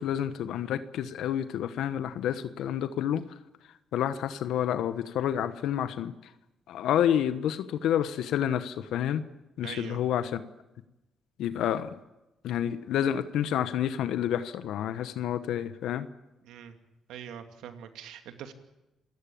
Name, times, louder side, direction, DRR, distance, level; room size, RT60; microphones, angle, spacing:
voice 1, 0.0-3.2 3.9-6.1 6.7-9.2 9.6-10.4 11.4-12.0 12.4-16.1, left 10 dB, 80° left, 12 dB, 1.2 m, -29 dB
voice 2, 9.6-10.0 16.4-16.7 17.1-18.5, right 9 dB, 85° right, 7 dB, 2.5 m, -43 dB
28.0 x 16.5 x 8.7 m, 0.97 s
cardioid pair, 90°, 0 cm